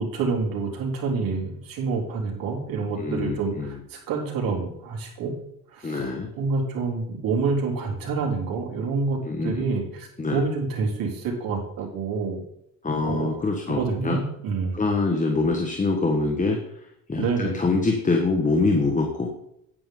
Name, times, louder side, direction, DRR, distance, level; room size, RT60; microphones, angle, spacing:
voice 1, 0.0-5.4 5.7-6.0 6.4-9.2 9.4-12.4 13.0-13.3 13.7-14.8 17.2-17.6, right 4 dB, 65° right, -1 dB, 4.0 m, -27 dB
voice 2, 3.0-3.8 5.8-6.3 9.2-9.6 10.2-10.4 12.8-14.2 14.7-19.3, left 3 dB, 20° left, 2 dB, 1.5 m, -25 dB
9.9 x 9.4 x 3.9 m, 0.75 s
cardioid pair, 105°, 37 cm